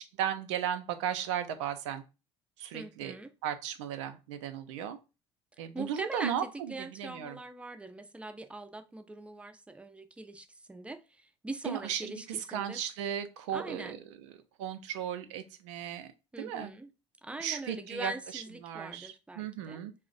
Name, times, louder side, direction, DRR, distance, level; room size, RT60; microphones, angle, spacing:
voice 1, 0.2-2.0 2.6-3.1 3.4-5.0 5.6-6.4 6.8-7.4 11.7-12.1 12.5-14.0 14.6-16.1 16.4-16.7 17.4-20.1, right 9 dB, 80° right, 0.4 m, -35 dB
voice 2, 2.7-3.3 5.6-12.8 13.5-14.0 16.3-16.9 17.2-19.8, right 2 dB, 10° right, 0.4 m, -42 dB
2.5 x 2.0 x 3.8 m
hypercardioid pair, 65°, 16 cm